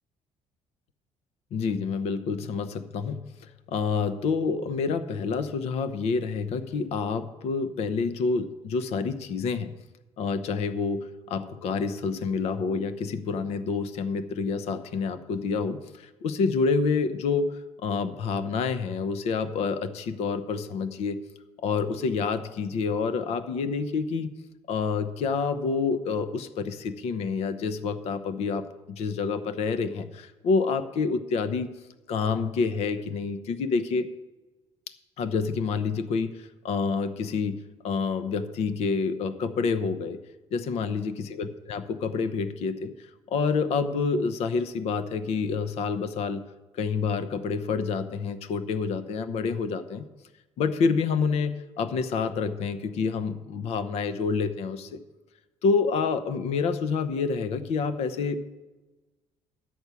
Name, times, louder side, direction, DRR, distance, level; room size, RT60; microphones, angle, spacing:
voice 1, 1.5-9.7 10.2-21.2 21.6-24.4 24.7-31.7 32.1-34.1 35.2-40.2 40.5-46.4 46.7-50.0 50.6-55.0 55.6-58.4, left 5 dB, 65° left, 12 dB, 0.8 m, -28 dB
11.0 x 6.0 x 8.2 m, 1.1 s
cardioid pair, 155°, 12 cm